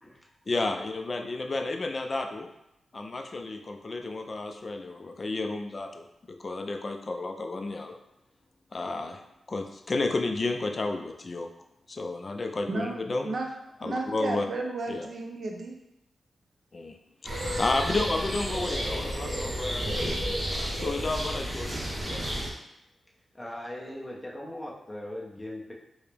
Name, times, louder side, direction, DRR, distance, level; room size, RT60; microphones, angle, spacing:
voice 1, 0.5-2.5 2.9-6.1 6.4-7.9 8.7-9.2 9.5-11.5 11.9-13.4 13.8-14.5 14.9-15.1 16.7-17.0 17.2-20.4 20.7-22.3, left 2 dB, 35° left, 4 dB, 0.3 m, -32 dB
voice 2, 13.8-15.7, right 3 dB, 60° right, 1 dB, 0.6 m, -33 dB
sound 1, 17.2-22.5, equal, 25° right, 0.8 m, -31 dB
voice 3, 23.3-25.7, left 1 dB, 10° left, -3 dB, 0.7 m, -39 dB
4.6 x 2.0 x 3.3 m, 0.89 s
wide cardioid pair, 140°, 0 cm